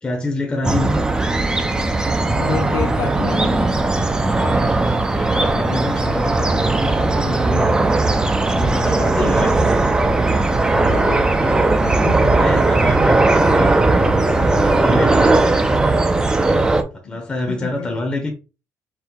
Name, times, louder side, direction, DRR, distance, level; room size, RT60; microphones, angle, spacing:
voice 1, 0.0-1.1 5.1-7.8 8.5-9.6 10.0-10.2 12.3-13.7 14.1-16.1 16.4-16.6 16.9-18.3, left 2 dB, 15° left, 0.8 m, -27 dB
sound 1, 0.6-16.8, right 2 dB, 15° right, 0.4 m, -17 dB
voice 2, 2.3-4.0 9.2-9.8 10.8-12.6 14.9-15.6 17.0-17.9, left 8 dB, 70° left, 0.6 m, -31 dB
4.4 x 2.2 x 3.6 m
cardioid pair, 130°, 6 cm